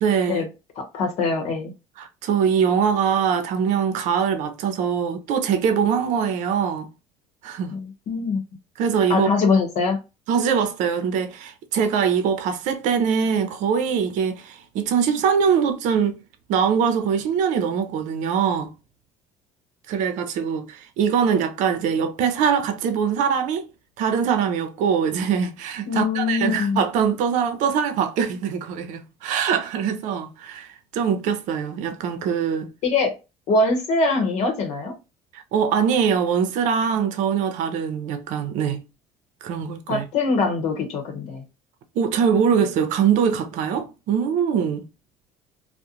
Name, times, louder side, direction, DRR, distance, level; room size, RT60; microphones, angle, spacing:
voice 1, 0.0-0.5 2.0-6.9 7.4-7.7 8.8-9.3 10.3-16.2 16.5-18.7 19.9-23.7 24.0-32.7 35.3-38.8 39.4-40.0 42.0-44.8, right 7 dB, 70° right, 0.6 m, -22 dB
voice 2, 0.8-1.7 7.7-8.4 9.1-10.0 25.9-26.8 32.8-33.1 33.5-34.9 39.9-41.4, left 3 dB, 60° left, 0.9 m, -23 dB
2.4 x 2.1 x 2.8 m
supercardioid pair, 95°, 13 cm